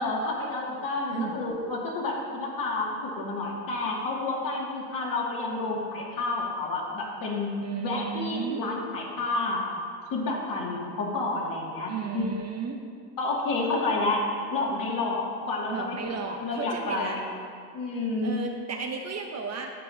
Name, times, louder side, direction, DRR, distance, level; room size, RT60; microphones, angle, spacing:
voice 1, 0.0-7.5 7.8-9.6 10.1-12.2 13.2-14.2 14.5-17.2 17.7-18.4, left 2 dB, 50° left, -3 dB, 2.2 m, -30 dB
voice 2, 7.6-8.7 11.9-12.8 15.7-17.2 18.2-19.7, right 5 dB, 35° right, 2 dB, 0.9 m, -34 dB
12.5 x 8.1 x 2.7 m, 2.2 s
cardioid pair, 115°, 43 cm